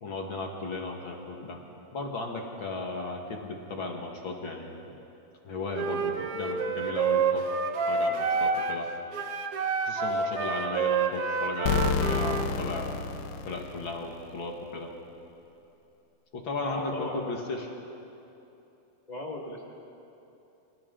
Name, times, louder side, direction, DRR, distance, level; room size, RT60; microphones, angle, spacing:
voice 1, 0.0-1.6 1.9-5.0 5.4-7.5 7.9-8.9 9.9-13.0 13.5-14.9 16.3-17.7, left 3 dB, 45° left, 1 dB, 1.7 m, -36 dB
Wind instrument woodwind instrument, 5.7-8.8 9.1-12.5, right 5 dB, 85° right, 1.3 m, -28 dB
sound 1, 11.7-14.4, left 6 dB, 75° left, 2.0 m, -29 dB
voice 2, 16.6-17.3 19.1-19.6, left 2 dB, 30° left, -1 dB, 0.8 m, -37 dB
29.0 x 26.0 x 3.8 m, 2.9 s
omnidirectional pair, 4.3 m